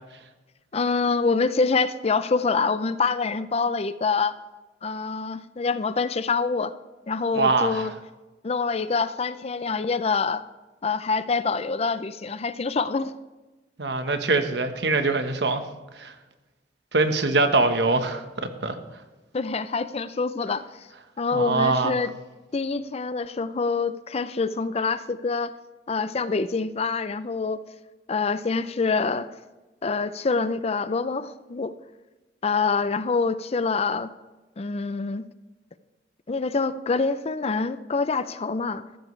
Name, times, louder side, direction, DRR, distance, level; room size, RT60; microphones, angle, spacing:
voice 1, 0.7-4.4 4.8-6.7 7.1-7.9 8.4-10.4 10.8-13.1 19.3-20.6 21.2-22.1 22.5-25.5 25.9-27.6 28.1-29.3 29.8-31.7 32.4-34.1 34.6-35.3 36.3-38.9, left 4 dB, 35° left, 13 dB, 0.5 m, -25 dB
voice 2, 7.3-7.9 13.8-15.6 16.0-16.1 16.9-18.8 21.3-21.9, right 3 dB, 70° right, 7 dB, 1.2 m, -23 dB
14.5 x 13.0 x 3.2 m, 1.2 s
head